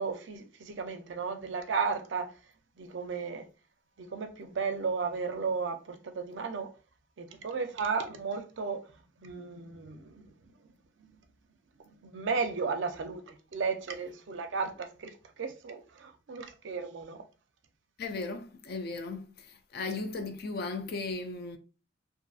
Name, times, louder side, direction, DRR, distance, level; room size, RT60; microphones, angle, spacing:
voice 1, 0.0-2.3 2.8-3.5 4.0-6.7 7.2-8.8 9.2-10.2 11.0-11.1 12.0-17.2, right 5 dB, 65° right, 0.5 m, -34 dB
voice 2, 18.0-19.3 19.7-21.6, left 3 dB, 50° left, 0.4 m, -36 dB
2.6 x 2.5 x 2.4 m
head